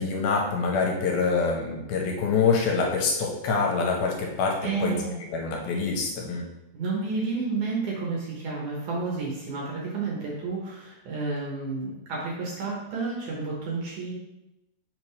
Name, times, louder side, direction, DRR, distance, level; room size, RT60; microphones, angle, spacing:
voice 1, 0.0-5.0 5.3-6.4, left 4 dB, 75° left, 0 dB, 2.6 m, -25 dB
voice 2, 4.6-5.2 6.7-14.1, right 4 dB, 65° right, -4 dB, 2.2 m, -31 dB
5.7 x 5.2 x 3.3 m, 0.94 s
omnidirectional pair, 4.5 m